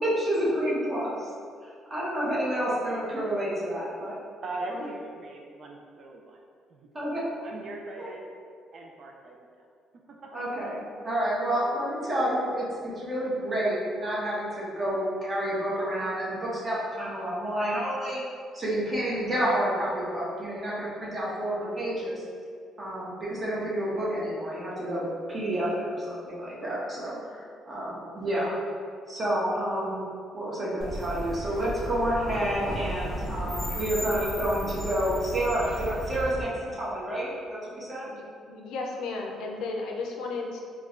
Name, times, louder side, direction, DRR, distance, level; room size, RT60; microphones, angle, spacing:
voice 1, 0.0-1.3 1.6-4.2 4.7-4.8 6.9-7.2 8.0-8.1 10.3-18.2 18.5-22.2 22.8-28.6 29.1-30.0 30.3-38.1, right 1 dB, 25° right, -7 dB, 1.0 m, -29 dB
voice 2, 4.4-6.4 6.7-6.9 7.4-8.3 8.7-9.5 10.1-10.3, right 2 dB, 50° right, 0 dB, 0.3 m, -40 dB
sound 1, 30.8-36.4, right 1 dB, 5° left, 1.1 m, -34 dB
voice 3, 38.1-40.6, left 3 dB, 80° left, 0 dB, 0.5 m, -34 dB
4.5 x 2.2 x 2.4 m, 2.2 s
cardioid pair, 115°, 0 cm